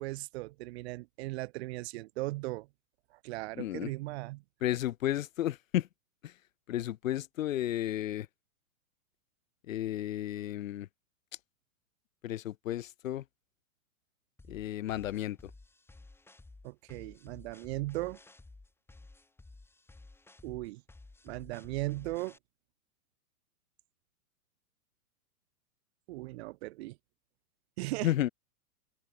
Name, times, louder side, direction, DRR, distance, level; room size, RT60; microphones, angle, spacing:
voice 1, 0.0-2.7 3.1-4.4 16.6-18.2 20.4-20.8 21.2-22.4 26.1-27.0 27.8-28.1, right 20 dB, 45° right, 3.4 m, -37 dB
voice 2, 3.6-3.9 4.6-5.9 6.2-6.3 6.7-8.3 9.7-10.9 12.2-13.2 14.5-15.5 28.0-28.3, left 13 dB, 60° left, 4.1 m, -33 dB
sound 1, 14.4-22.4, left 2 dB, 5° left, 7.8 m, -54 dB
open air
hypercardioid pair, 145°, 44 cm